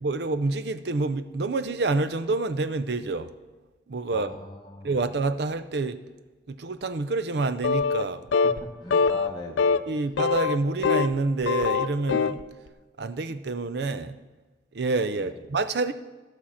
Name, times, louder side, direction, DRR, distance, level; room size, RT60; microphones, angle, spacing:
voice 1, 0.0-3.3 3.9-4.3 4.8-6.0 6.5-8.2 9.9-12.4 13.0-14.2 14.7-15.9, right 3 dB, 60° right, 0.5 m, -27 dB
voice 2, 4.1-5.0 8.4-9.8 15.2-15.4, left 1 dB, 20° left, 0.9 m, -40 dB
sound 1, 7.6-8.1 8.3-8.6 8.9-9.3 9.6-9.8 10.2-11.2 11.4-12.4, left 5 dB, 80° left, 0.4 m, -23 dB
15.0 x 6.2 x 4.3 m
head